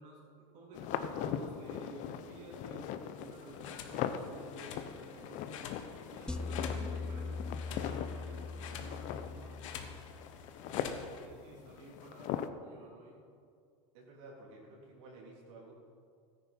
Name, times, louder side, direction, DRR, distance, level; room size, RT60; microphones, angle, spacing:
voice 1, 0.0-5.6 6.1-7.4 7.7-10.2 10.6-13.2, right 2 dB, 50° right, -3 dB, 3.0 m, -52 dB
sound 1, 0.7-12.5, left 9 dB, 50° left, 0.7 m, -41 dB
sound 2, 3.2-11.3, left 7 dB, 80° left, 1.2 m, -49 dB
sound 3, 6.3-10.6, left 4 dB, 5° left, 0.5 m, -41 dB
voice 2, 13.9-15.7, right 2 dB, 75° right, -4 dB, 3.3 m, -52 dB
14.0 x 10.0 x 4.4 m, 2.3 s
supercardioid pair, 125°, 16 cm